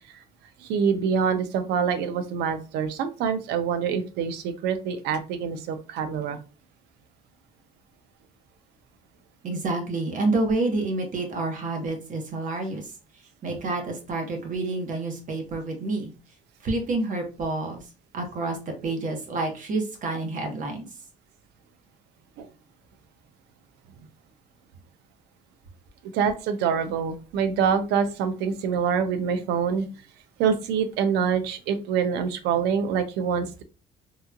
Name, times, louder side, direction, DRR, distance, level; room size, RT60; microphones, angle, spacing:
voice 1, 0.6-6.4 22.4-22.5 26.1-29.9 30.4-33.6, right 7 dB, 85° right, 10 dB, 0.6 m, -25 dB
voice 2, 9.4-16.1 16.6-17.9 18.1-20.9, right 2 dB, 50° right, 3 dB, 1.1 m, -29 dB
3.5 x 3.0 x 2.3 m, 0.33 s
cardioid pair, 110°, 17 cm